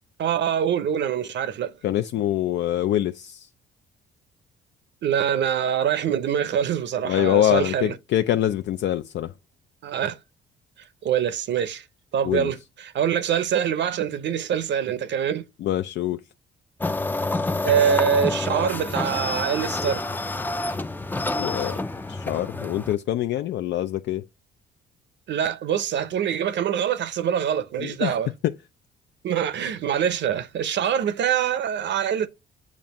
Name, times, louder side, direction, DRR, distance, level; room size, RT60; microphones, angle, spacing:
voice 1, 0.2-1.7 5.0-7.9 9.8-10.2 11.0-11.8 12.1-15.4 17.6-20.0 25.3-28.3 29.2-32.3, right 9 dB, 65° right, 0.7 m, -24 dB
voice 2, 1.8-3.5 7.0-9.3 12.2-12.5 15.6-16.2 21.4-21.8 22.1-24.2 27.8-28.1 28.4-28.5, left 12 dB, 65° left, 0.4 m, -24 dB
sound 1, 16.8-23.0, left 2 dB, 10° left, 0.4 m, -28 dB
7.3 x 2.5 x 5.2 m
cardioid pair, 90°, 20 cm